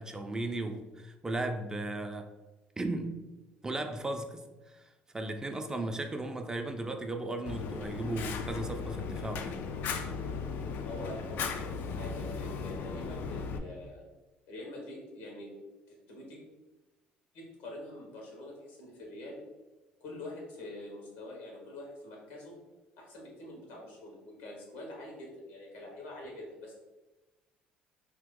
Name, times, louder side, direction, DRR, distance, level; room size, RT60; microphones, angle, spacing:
voice 1, 0.0-2.3 2.8-3.2 3.6-9.6, right 2 dB, 15° right, 5 dB, 0.4 m, -36 dB
Fire, 7.5-13.6, left 5 dB, 65° left, 0.4 m, -37 dB
voice 2, 10.8-14.0 14.5-15.5 15.9-16.4 17.3-19.4 20.0-22.5 23.0-26.7, left 1 dB, 85° left, -1 dB, 1.3 m, -45 dB
2.9 x 2.9 x 3.6 m, 1.1 s
supercardioid pair, 85°, 4 cm